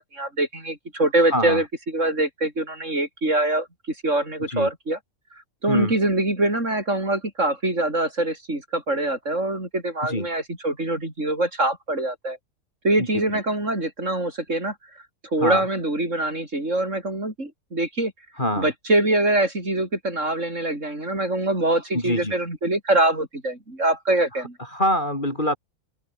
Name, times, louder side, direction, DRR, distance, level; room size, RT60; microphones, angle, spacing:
voice 1, 0.0-3.7 4.0-5.0 5.6-12.4 12.8-14.7 15.3-18.1 18.6-24.6, right 2 dB, 60° right, 7.5 m, -24 dB
voice 2, 1.3-1.6 4.5-4.7 5.7-5.9 10.0-10.3 13.0-13.4 15.4-15.6 18.4-18.7 21.9-22.4 24.6-25.6, left 1 dB, 35° left, 5.8 m, -25 dB
open air
omnidirectional pair, 1.5 m